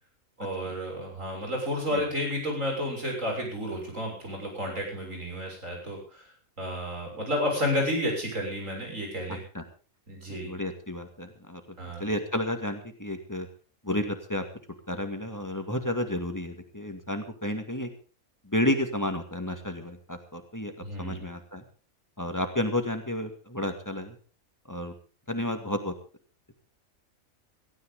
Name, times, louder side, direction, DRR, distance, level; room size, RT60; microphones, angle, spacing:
voice 1, 0.4-6.3 6.6-9.4 10.1-10.5 11.8-12.0 20.8-21.3, left 1 dB, 65° right, 1 dB, 7.0 m, -31 dB
voice 2, 9.3-9.6 10.3-13.5 13.8-14.4 14.9-17.9 18.4-20.7 21.0-21.6 22.2-24.2 24.7-24.9 25.3-25.9, left 1 dB, 15° left, 5 dB, 2.2 m, -31 dB
17.0 x 16.0 x 3.8 m, 0.37 s
omnidirectional pair, 1.5 m